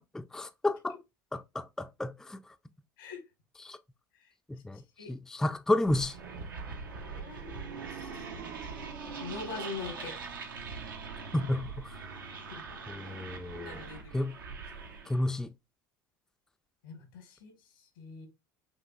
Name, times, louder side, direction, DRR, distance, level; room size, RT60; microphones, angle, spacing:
voice 1, 0.1-1.0 1.3-2.5 3.6-3.8 4.5-6.2 11.3-12.0 12.9-13.8 14.1-14.4 15.1-15.5, left 1 dB, 5° left, 0.3 m, -32 dB
sound 1, 5.8-15.2, right 5 dB, 90° right, 0.8 m, -42 dB
voice 2, 7.0-7.6 7.9-8.3 9.2-10.2 12.5-12.6 13.5-14.3 16.8-17.6 18.0-18.3, left 4 dB, 80° left, 1.5 m, -43 dB
5.8 x 2.5 x 2.3 m
hypercardioid pair, 75°, 11 cm